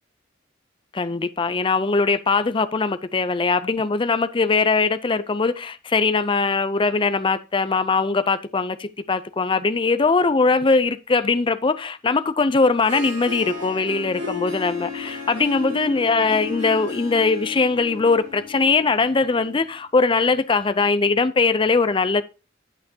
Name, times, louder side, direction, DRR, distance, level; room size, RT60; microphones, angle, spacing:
voice 1, 0.9-22.2, left 4 dB, 25° left, 0.5 m, -21 dB
Harp, 12.6-19.7, left 3 dB, 65° right, 3.5 m, -34 dB
8.8 x 8.2 x 2.8 m
head